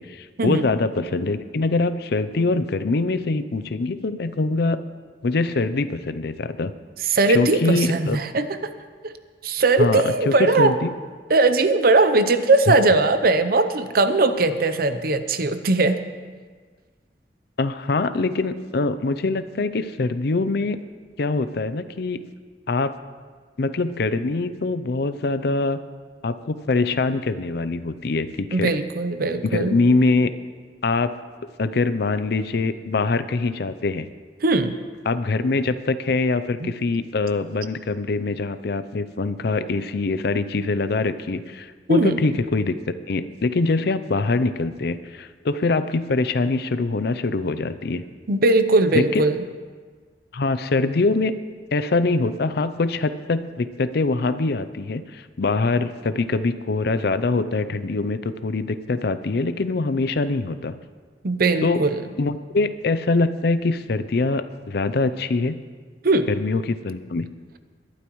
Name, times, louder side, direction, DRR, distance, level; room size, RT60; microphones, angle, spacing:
voice 1, 0.0-4.8 5.2-6.7 7.3-8.2 9.8-10.9 12.7-12.8 17.6-20.8 21.2-22.2 22.7-22.9 23.6-25.8 26.2-28.7 29.5-30.3 30.8-31.1 31.6-34.1 35.0-42.8 43.1-48.0 48.9-49.2 50.3-51.3 51.7-60.7 61.6-61.8 62.2-65.6 66.3-67.3, left 3 dB, 60° left, 12 dB, 0.5 m, -23 dB
voice 2, 7.1-8.6 9.0-9.1 9.4-10.7 11.3-16.0 28.5-29.8 34.4-34.7 36.6-36.7 41.9-42.2 48.3-49.4 61.2-62.0 66.0-66.3, right 3 dB, 55° right, 10 dB, 0.7 m, -19 dB
22.0 x 11.5 x 3.1 m, 1.5 s
head